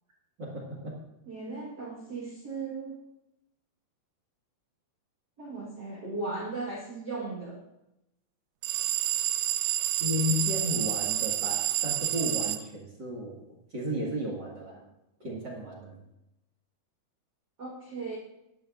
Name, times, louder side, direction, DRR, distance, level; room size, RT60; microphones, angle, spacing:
voice 1, 0.4-1.0 10.0-14.8 15.2-16.0, left 1 dB, 35° right, -4 dB, 2.0 m, -34 dB
voice 2, 1.3-3.0 5.4-7.6 17.6-18.2, right 3 dB, 50° right, -4 dB, 1.1 m, -37 dB
sound 1, 8.6-12.6, right 13 dB, 85° right, 2.1 m, -29 dB
18.0 x 11.5 x 2.6 m, 0.91 s
omnidirectional pair, 4.7 m